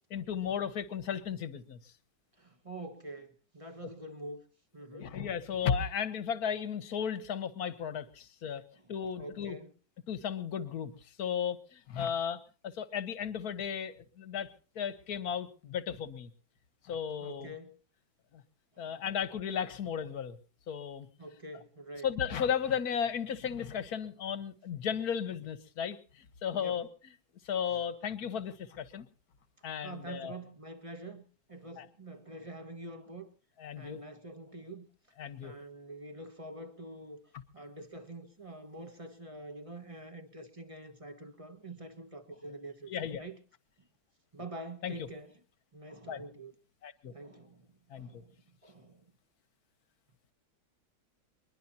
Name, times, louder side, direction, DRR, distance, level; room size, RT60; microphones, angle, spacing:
voice 1, 0.1-1.9 4.9-8.6 8.9-9.6 10.1-16.3 16.8-17.5 18.3-18.4 18.8-20.4 20.7-21.1 22.0-26.9 27.4-29.1 29.6-30.4 31.8-31.9 33.6-34.0 35.2-35.6 42.9-43.2 44.8-45.1 46.1-46.2 46.8-47.1 47.9-48.2, left 7 dB, 50° left, 1.5 m, -35 dB
voice 2, 2.4-4.4 4.7-5.1 9.2-9.7 17.2-17.8 18.8-18.9 21.2-22.1 26.5-26.8 29.8-31.2 31.5-33.3 33.7-34.9 35.4-37.2 37.5-42.9 43.2-43.4 44.3-45.3 45.7-46.5 47.1-47.7 47.9-48.4 48.6-49.0, right 1 dB, 20° right, 1.2 m, -46 dB
22.0 x 21.5 x 2.8 m
omnidirectional pair, 2.2 m